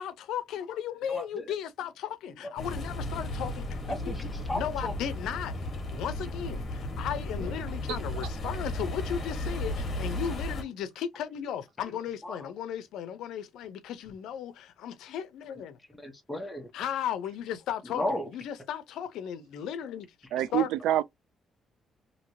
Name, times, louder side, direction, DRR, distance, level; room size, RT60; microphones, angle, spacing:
voice 1, 0.0-4.1 4.5-15.8 16.7-18.0 18.3-20.1 20.5-20.7, left 9 dB, 85° left, 0.5 m, -36 dB
voice 2, 1.1-1.5 2.4-2.5 3.9-4.9 7.4-7.5 11.9-12.5 15.9-16.7 17.8-18.3, left 1 dB, 10° left, 0.9 m, -35 dB
sound 1, 2.6-10.6, left 1 dB, 45° left, 1.2 m, -34 dB
voice 3, 20.3-21.0, right 12 dB, 90° right, 0.3 m, -26 dB
2.9 x 2.8 x 2.7 m
cardioid pair, 90°, 0 cm